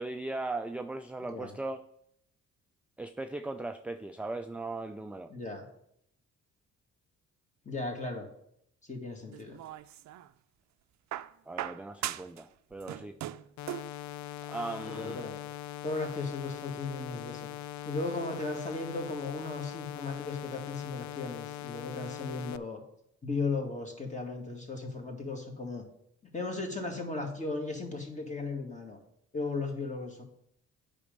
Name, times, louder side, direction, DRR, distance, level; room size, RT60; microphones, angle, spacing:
voice 1, 0.0-1.8 3.0-5.3 11.5-13.1 14.5-15.2, right 2 dB, 5° right, 7 dB, 0.3 m, -38 dB
voice 2, 1.2-1.6 5.3-5.7 7.6-8.3 8.9-9.6 14.9-15.4 15.8-17.5 17.9-22.8 23.2-25.8 26.2-29.0 29.3-30.2, left 3 dB, 25° left, 2 dB, 2.2 m, -36 dB
sound 1, 9.3-10.3 11.1-12.4 12.7-14.0 15.1-15.2, right 13 dB, 65° right, 0.5 m, -39 dB
sound 2, 13.6-22.6, left 12 dB, 70° left, 0.5 m, -41 dB
8.5 x 5.4 x 5.3 m, 0.73 s
cardioid pair, 90°, 30 cm